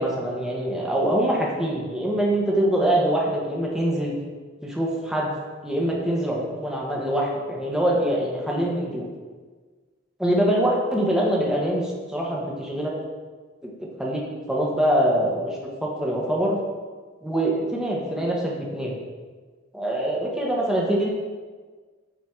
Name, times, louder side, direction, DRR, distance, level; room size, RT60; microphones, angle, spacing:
voice 1, 0.0-4.1 4.6-5.3 5.6-9.1 10.2-12.9 13.6-14.2 14.5-16.6 17.2-19.0 19.7-21.1, right 1 dB, 5° right, -3 dB, 1.4 m, -24 dB
9.5 x 4.2 x 4.7 m, 1.4 s
head